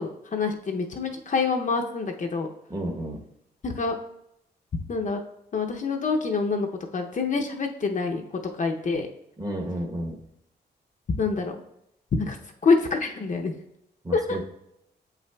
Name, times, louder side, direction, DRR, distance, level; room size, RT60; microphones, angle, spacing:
voice 1, 0.0-2.5 3.6-3.9 4.9-5.2 5.5-6.7 6.9-8.2 8.5-9.1 11.2-11.6 12.2-12.4 12.6-13.5 14.1-14.4, left 4 dB, 45° left, 3 dB, 0.6 m, -26 dB
voice 2, 2.7-3.2 9.4-10.2 14.0-14.4, right 1 dB, 20° right, 2 dB, 0.9 m, -31 dB
7.4 x 5.8 x 2.2 m, 0.80 s
cardioid pair, 90°, 18 cm